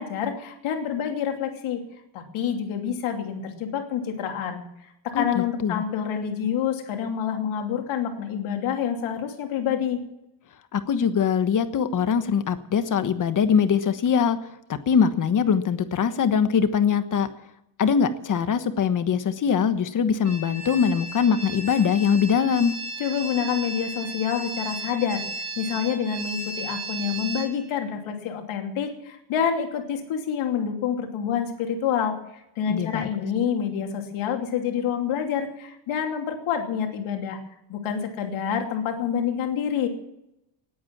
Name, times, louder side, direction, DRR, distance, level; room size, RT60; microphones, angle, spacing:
voice 1, 0.0-1.8 2.1-4.6 5.1-10.0 23.0-25.2 25.6-32.2 32.6-37.4 37.7-39.9, left 8 dB, 75° left, 3 dB, 2.9 m, -27 dB
voice 2, 5.1-5.8 10.7-14.4 14.7-17.3 17.8-22.7 32.7-33.1, left 7 dB, 40° left, 11 dB, 1.3 m, -22 dB
sound 1, 20.2-27.5, right 2 dB, 80° right, 5.0 m, -35 dB
19.5 x 8.6 x 7.4 m, 0.84 s
cardioid pair, 135°, 48 cm